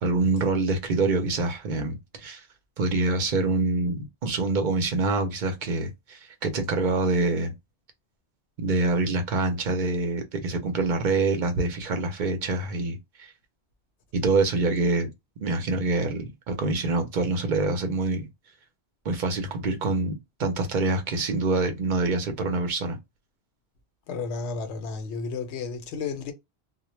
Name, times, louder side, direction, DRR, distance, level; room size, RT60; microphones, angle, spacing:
voice 1, 0.0-2.4 2.8-7.5 8.6-13.3 14.1-15.1 15.4-18.3 19.0-23.0, right 3 dB, 55° right, 0.6 m, -26 dB
voice 2, 24.1-26.3, left 4 dB, 80° left, 0.9 m, -32 dB
2.1 x 2.1 x 3.0 m
omnidirectional pair, 1.1 m